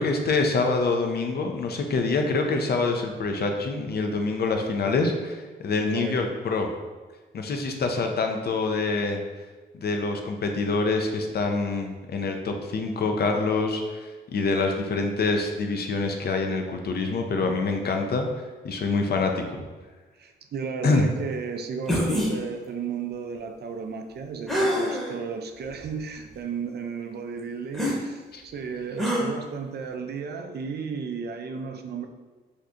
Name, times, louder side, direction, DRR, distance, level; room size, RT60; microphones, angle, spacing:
voice 1, 0.0-6.7 7.3-9.2 9.7-19.7 20.8-21.0 28.3-28.4, left 3 dB, 50° left, 4 dB, 0.5 m, -26 dB
voice 2, 20.2-32.1, right 5 dB, 50° right, 6 dB, 0.4 m, -34 dB
sound 1, 21.9-22.3 24.5-25.1 25.8-25.9 27.7-28.0 29.0-29.3, equal, ahead, 0.9 m, -25 dB
2.6 x 2.3 x 3.6 m, 1.3 s
supercardioid pair, 45°, 21 cm